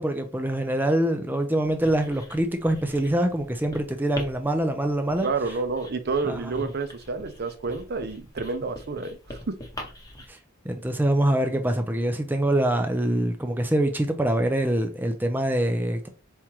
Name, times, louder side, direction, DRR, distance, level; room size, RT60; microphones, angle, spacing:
voice 1, 0.0-5.3 6.3-6.4 10.3-10.4 10.6-16.1, right 1 dB, 10° right, 0.4 m, -24 dB
Writing, 1.6-10.3, left 1 dB, 15° left, 0.9 m, -43 dB
voice 2, 5.2-9.6, right 4 dB, 50° right, 0.6 m, -29 dB
4.3 x 3.6 x 3.0 m
head